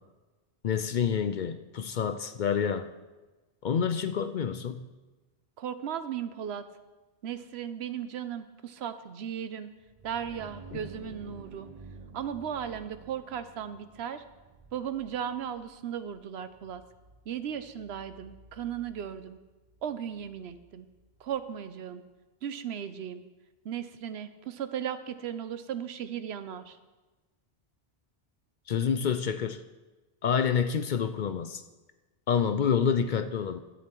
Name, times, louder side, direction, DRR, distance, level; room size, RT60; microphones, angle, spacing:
voice 1, 0.6-2.9 3.6-4.9 10.7-10.8 28.7-29.6 30.2-31.6 32.3-33.6, left 7 dB, 60° left, 10 dB, 0.6 m, -28 dB
voice 2, 5.6-6.6 7.2-9.7 10.0-11.7 12.1-14.2 14.7-16.8 17.3-19.4 19.8-20.9 21.2-22.0 22.4-23.2 23.6-26.8, right 9 dB, 80° right, 11 dB, 0.9 m, -36 dB
sound 1, 9.8-21.4, right 3 dB, 40° right, 0.8 m, -52 dB
13.0 x 8.6 x 4.5 m, 1.2 s
omnidirectional pair, 1.1 m